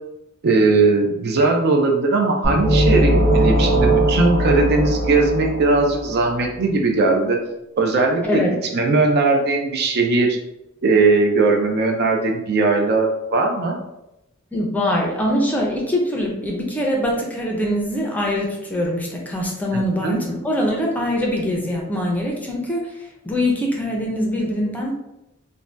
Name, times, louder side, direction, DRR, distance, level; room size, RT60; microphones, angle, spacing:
voice 1, 0.4-7.4 7.8-8.4 8.7-10.4 10.8-13.8 19.7-20.2, right 3 dB, 50° right, 2 dB, 0.4 m, -19 dB
sound 1, 2.4-6.2, right 1 dB, 30° right, 0.8 m, -19 dB
voice 2, 14.5-22.8 23.2-24.9, left 1 dB, 10° left, -2 dB, 0.5 m, -23 dB
2.6 x 2.1 x 3.2 m, 0.91 s
head